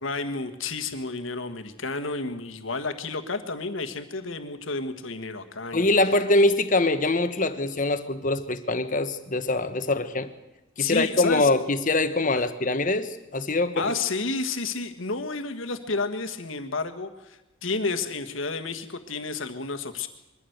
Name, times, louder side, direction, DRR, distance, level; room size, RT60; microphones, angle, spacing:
voice 1, 0.0-5.9 10.8-11.5 12.3-12.5 13.7-20.1, left 3 dB, 75° left, 7 dB, 1.6 m, -31 dB
voice 2, 5.7-10.3 10.8-13.9, left 2 dB, 40° left, 10 dB, 1.2 m, -23 dB
22.5 x 14.5 x 8.0 m, 0.98 s
head